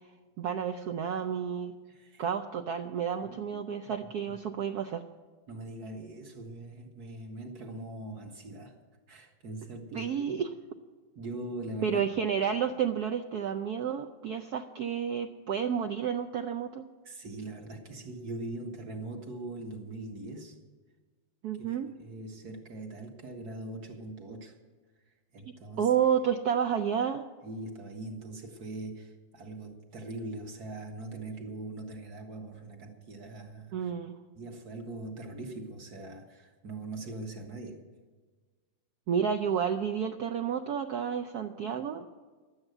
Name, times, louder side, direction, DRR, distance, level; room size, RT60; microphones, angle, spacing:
voice 1, 0.4-1.7 2.2-5.0 9.9-10.5 11.8-16.8 21.4-21.9 25.8-27.2 33.7-34.2 39.1-42.1, right 8 dB, 70° right, 6 dB, 0.9 m, -30 dB
voice 2, 1.9-2.2 3.2-3.4 4.3-4.4 5.5-8.8 9.1-10.3 11.2-12.0 17.0-20.6 21.6-21.7 22.0-24.5 25.3-25.9 27.4-33.9 34.4-37.8, right 2 dB, 50° right, 2 dB, 2.0 m, -41 dB
12.0 x 8.9 x 7.8 m, 1.4 s
omnidirectional pair, 2.2 m